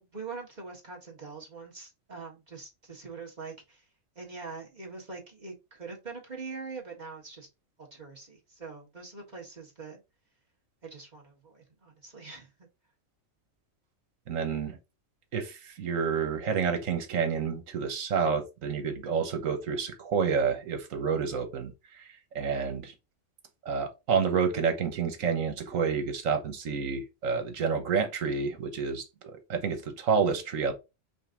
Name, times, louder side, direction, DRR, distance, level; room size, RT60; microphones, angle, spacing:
voice 1, 0.0-3.9 4.2-7.5 7.8-10.0 10.8-12.5, right 4 dB, 35° right, 1.6 m, -43 dB
voice 2, 14.3-14.8 15.3-22.1 22.3-22.9 23.6-29.1 29.3-30.7, right 6 dB, 80° right, 1.4 m, -29 dB
5.2 x 2.7 x 3.7 m
omnidirectional pair, 1.4 m